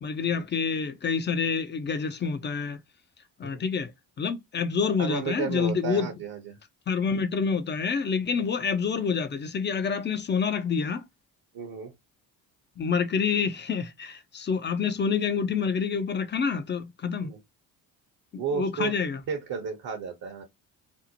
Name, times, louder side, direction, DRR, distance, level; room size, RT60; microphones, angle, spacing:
voice 1, 0.0-2.8 3.4-3.9 4.2-6.1 6.9-11.0 12.8-17.3 18.5-19.2, left 6 dB, 25° left, 0.4 m, -27 dB
voice 2, 5.0-6.6 11.5-11.9 17.2-17.4 18.4-18.9 19.3-20.4, right 6 dB, 50° right, 0.8 m, -33 dB
2.7 x 2.0 x 2.8 m
hypercardioid pair, 60°, 44 cm